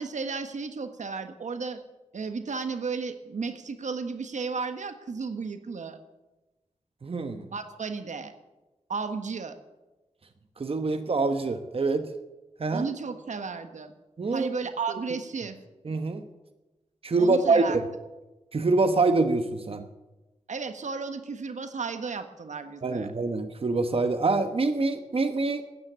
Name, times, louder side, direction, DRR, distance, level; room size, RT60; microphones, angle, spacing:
voice 1, 0.0-1.8 2.1-6.0 7.5-8.3 8.9-9.6 12.7-13.9 14.3-15.6 17.2-17.8 20.5-23.1, right 5 dB, 75° right, 9 dB, 1.4 m, -33 dB
voice 2, 7.0-7.5 10.6-12.1 12.6-12.9 14.2-14.5 14.9-15.0 15.8-16.2 17.0-17.8 18.5-19.8 22.8-25.6, right 3 dB, 50° right, 8 dB, 1.1 m, -25 dB
14.0 x 9.7 x 9.9 m, 1.1 s
wide cardioid pair, 85°, 12 cm